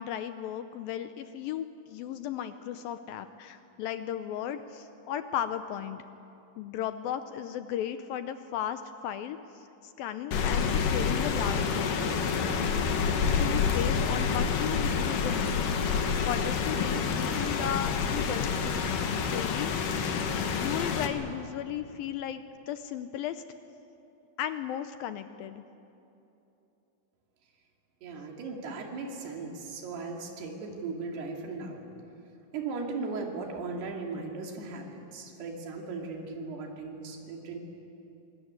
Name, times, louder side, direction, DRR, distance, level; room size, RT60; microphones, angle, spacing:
voice 1, 0.0-6.0 6.6-12.2 13.2-19.7 19.9-20.3 20.5-23.4 24.4-25.6, left 10 dB, 75° left, 10 dB, 2.2 m, -36 dB
Rain, 10.3-21.1, left 6 dB, 60° left, 2.8 m, -28 dB
voice 2, 28.0-31.8 32.5-37.6, right 4 dB, 75° right, 1 dB, 4.6 m, -37 dB
25.0 x 21.0 x 9.6 m, 2.9 s
omnidirectional pair, 4.7 m